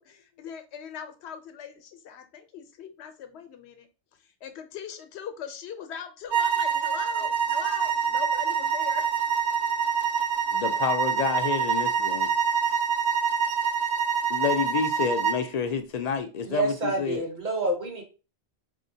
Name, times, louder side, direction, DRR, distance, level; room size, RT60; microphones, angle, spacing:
voice 1, 0.0-3.9 4.2-9.0 12.1-12.2, left 7 dB, 80° left, 0.9 m, -41 dB
sound 1, 6.3-15.5, right 7 dB, 85° right, 0.9 m, -26 dB
voice 2, 10.5-12.3 14.3-17.2, left 6 dB, 55° left, 0.4 m, -29 dB
voice 3, 16.4-18.0, right 2 dB, 45° right, 1.0 m, -28 dB
4.3 x 2.7 x 2.7 m
omnidirectional pair, 1.1 m